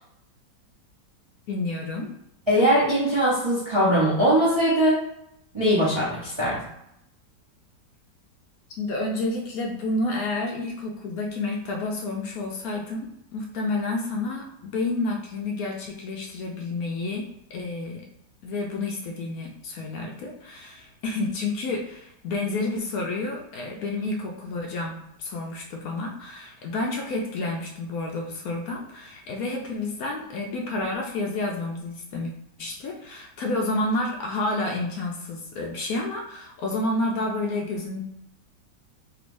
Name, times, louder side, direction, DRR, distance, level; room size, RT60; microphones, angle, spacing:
voice 1, 1.5-2.1 8.8-18.1 18.4-32.3 32.6-38.0, left 2 dB, 70° left, 0 dB, 0.9 m, -30 dB
voice 2, 2.5-5.0 5.5-6.6, equal, 35° right, -8 dB, 0.4 m, -21 dB
3.3 x 3.0 x 2.5 m, 0.79 s
omnidirectional pair, 1.8 m